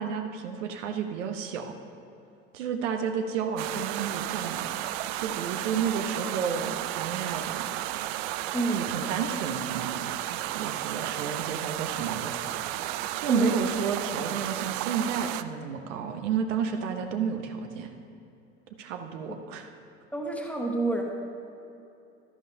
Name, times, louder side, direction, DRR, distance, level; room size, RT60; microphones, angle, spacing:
voice 1, 0.0-1.8 2.5-4.7 5.2-7.7 8.7-12.4 13.2-17.9 18.8-19.7, right 7 dB, 70° right, 5 dB, 0.8 m, -31 dB
sound 1, 3.6-15.4, right 14 dB, 50° right, 0.4 m, -33 dB
voice 2, 8.5-8.9 13.3-13.6 19.3-19.4 20.1-21.0, right 2 dB, 5° left, 0 dB, 1.3 m, -28 dB
12.0 x 11.0 x 2.7 m, 2.8 s
figure-of-eight pair, 70°, 39 cm